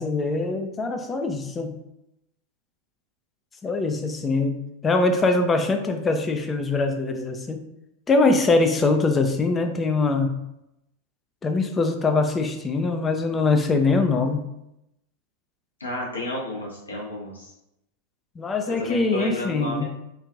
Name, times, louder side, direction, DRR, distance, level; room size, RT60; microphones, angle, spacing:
voice 1, 0.0-1.8 3.6-7.6 8.1-10.3 11.4-14.5 18.4-19.8, left 3 dB, 20° left, 6 dB, 0.4 m, -23 dB
voice 2, 15.8-17.5 18.8-19.8, left 1 dB, 75° left, -3 dB, 0.9 m, -31 dB
3.1 x 2.4 x 2.4 m, 0.85 s
figure-of-eight pair, 90°, 0 cm